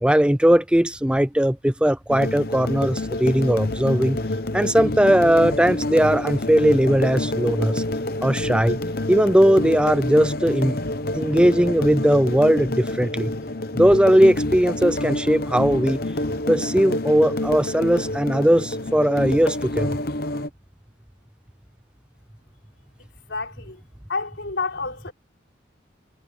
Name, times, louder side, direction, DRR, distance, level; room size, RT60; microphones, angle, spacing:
voice 1, 0.0-4.2 4.5-7.8 8.2-8.8 9.1-10.8 11.1-13.3 13.7-16.0 16.5-20.0, equal, 5° right, 0.4 m, -19 dB
sound 1, 2.1-20.5, left 1 dB, 50° left, 0.9 m, -27 dB
voice 2, 23.3-23.8 24.1-25.1, left 4 dB, 75° left, 4.3 m, -29 dB
head